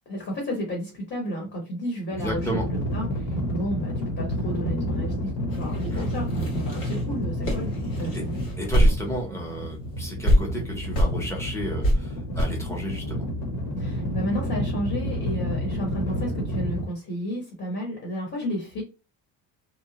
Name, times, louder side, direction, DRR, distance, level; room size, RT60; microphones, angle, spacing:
voice 1, 0.1-7.7 8.0-8.4 13.8-18.8, equal, 30° left, 0 dB, 0.9 m, -32 dB
sound 1, 2.2-16.9, equal, 55° left, 1.0 m, -30 dB
voice 2, 2.2-2.7 5.9-6.1 8.1-8.2 8.6-13.3, equal, 10° left, 0 dB, 0.6 m, -32 dB
sound 2, 5.5-9.3 9.6-9.7 10.2-10.4 10.9-11.1 11.8-11.9 12.4-12.5, equal, 85° left, 1.6 m, -23 dB
2.9 x 2.2 x 2.8 m, 0.31 s
cardioid pair, 180°, 35 cm